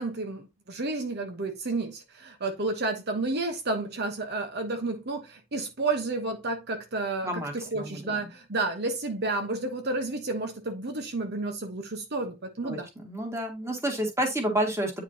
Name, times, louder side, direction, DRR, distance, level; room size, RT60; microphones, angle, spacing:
voice 1, 0.0-12.9, right 2 dB, 55° right, 1.1 m, -31 dB
voice 2, 7.2-8.3 12.6-15.0, right 1 dB, 15° right, 2.0 m, -30 dB
9.4 x 4.8 x 2.8 m
head